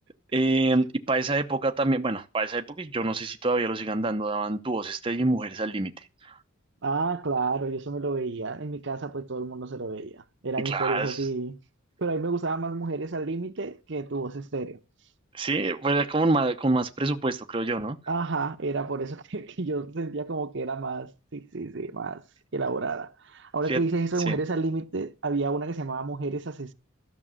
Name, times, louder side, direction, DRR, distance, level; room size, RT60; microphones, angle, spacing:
voice 1, 0.3-5.9 6.2-6.4 10.6-11.3 15.3-18.0 23.7-23.8 24.3-24.4, right 2 dB, 25° right, 0.9 m, -26 dB
voice 2, 6.8-11.6 12.0-14.8 18.1-22.2 22.5-26.7, right 3 dB, 60° right, 0.9 m, -30 dB
13.5 x 6.1 x 7.5 m
head